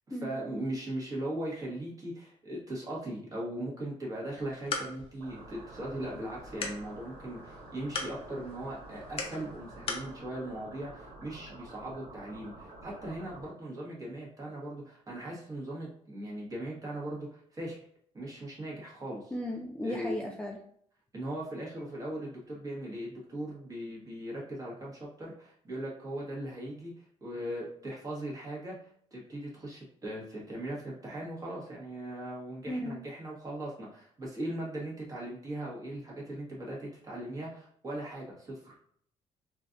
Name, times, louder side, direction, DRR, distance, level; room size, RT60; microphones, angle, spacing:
voice 1, 0.1-17.8 18.1-19.3 19.8-20.2 21.1-38.7, right 1 dB, 25° right, -4 dB, 1.3 m, -39 dB
sound 1, 4.3-10.1, left 4 dB, 45° left, 0.6 m, -41 dB
sound 2, 5.2-13.5, right 2 dB, 80° right, 1.3 m, -49 dB
voice 2, 19.3-20.6 32.7-33.0, left 1 dB, 10° left, 0 dB, 0.3 m, -36 dB
3.2 x 2.5 x 2.4 m, 0.63 s
cardioid pair, 105°, 13 cm